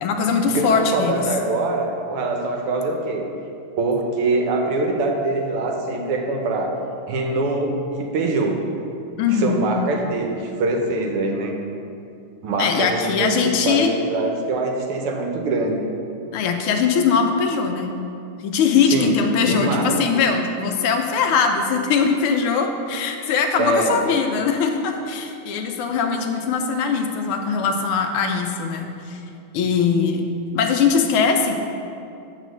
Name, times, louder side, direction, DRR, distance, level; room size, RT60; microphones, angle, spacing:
voice 1, 0.0-1.3 9.2-9.6 12.6-13.9 16.3-17.9 18.4-29.2 29.5-30.3 30.5-31.6, left 5 dB, 90° left, 4 dB, 1.6 m, -21 dB
voice 2, 0.5-3.2 3.8-6.7 7.1-8.6 9.3-11.5 12.4-15.9 18.9-19.1 19.4-20.0 23.6-24.0, right 2 dB, 85° right, 2 dB, 1.8 m, -23 dB
8.4 x 4.1 x 6.3 m, 2.6 s
omnidirectional pair, 2.4 m